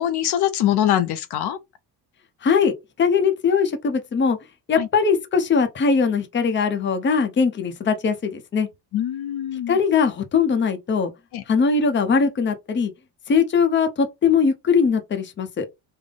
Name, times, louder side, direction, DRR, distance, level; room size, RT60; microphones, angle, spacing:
voice 1, 0.0-1.6 4.8-4.9 8.9-9.8 11.3-11.4, left 11 dB, 70° left, 0.7 m, -23 dB
voice 2, 2.4-2.7 3.0-4.4 4.7-8.7 9.7-11.1 11.5-12.9 13.3-15.7, left 5 dB, 25° left, 0.7 m, -20 dB
3.5 x 2.1 x 3.8 m
cardioid pair, 130°, 41 cm